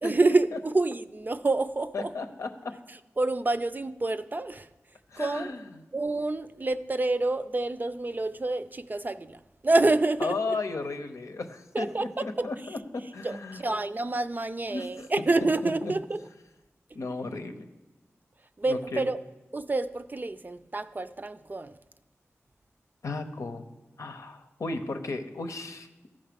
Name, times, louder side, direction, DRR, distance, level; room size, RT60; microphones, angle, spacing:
voice 1, 0.0-2.1 3.2-4.7 5.2-5.5 5.9-10.5 11.7-12.5 13.2-16.2 18.6-19.2 19.5-21.7, right 2 dB, 35° right, 12 dB, 0.5 m, -27 dB
voice 2, 1.9-2.7 5.1-5.8 10.2-13.7 14.7-15.1 15.4-15.9 16.9-17.7 18.7-19.1 23.0-23.6 24.0-25.9, left 3 dB, 80° left, 7 dB, 0.8 m, -35 dB
13.5 x 5.4 x 5.2 m, 1.1 s
cardioid pair, 45°, 5 cm